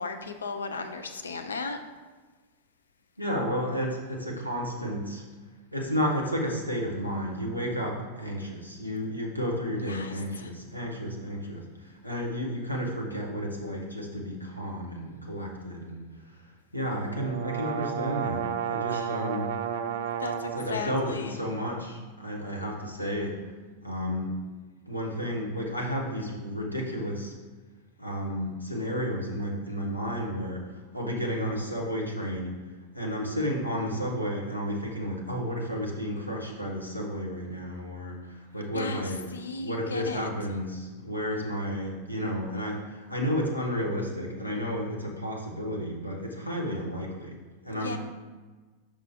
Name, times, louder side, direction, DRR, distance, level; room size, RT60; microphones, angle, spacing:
voice 1, 0.0-1.8 9.8-10.5 18.9-19.2 20.2-21.4 38.7-40.3 47.7-48.0, left 4 dB, 70° left, 6 dB, 0.5 m, -36 dB
voice 2, 3.2-5.2 5.7-16.0 16.3-16.4 16.7-19.6 20.5-23.4 23.8-24.4 24.9-27.3 28.0-32.7 32.9-39.3 39.6-47.4 47.6-48.0, equal, 90° left, -1 dB, 1.1 m, -32 dB
sound 1, 16.9-20.8, right 9 dB, 55° right, 0.4 m, -32 dB
5.7 x 5.0 x 3.6 m, 1.3 s
figure-of-eight pair, 90°, 0 cm